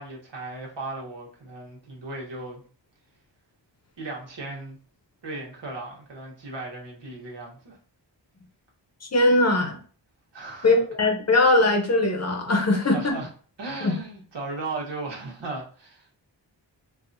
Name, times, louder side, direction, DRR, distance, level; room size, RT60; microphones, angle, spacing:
voice 1, 0.0-2.6 4.0-4.8 5.2-7.8 10.3-10.8 12.8-13.3 13.6-16.2, right 2 dB, 70° right, -2 dB, 1.3 m, -36 dB
voice 2, 9.0-9.8 10.6-13.0 13.8-13.9, left 2 dB, 35° left, 2 dB, 0.9 m, -20 dB
4.6 x 2.4 x 2.6 m, 0.41 s
wide cardioid pair, 120°, 44 cm